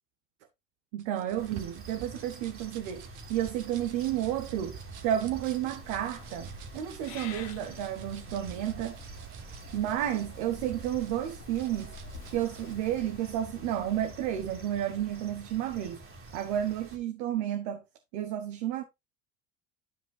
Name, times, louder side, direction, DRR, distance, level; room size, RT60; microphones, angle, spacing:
voice 1, 0.9-9.0 9.7-11.9 12.3-16.0 16.3-17.8 18.1-18.8, right 11 dB, 80° right, 1.0 m, -31 dB
sound 1, 1.0-12.7, right 6 dB, 55° right, 1.4 m, -48 dB
sound 2, 1.4-17.0, right 2 dB, 35° right, 2.4 m, -48 dB
Purr / Meow, 5.7-14.6, left 6 dB, 70° left, 1.7 m, -49 dB
12.0 x 5.2 x 2.3 m
supercardioid pair, 80°, 37 cm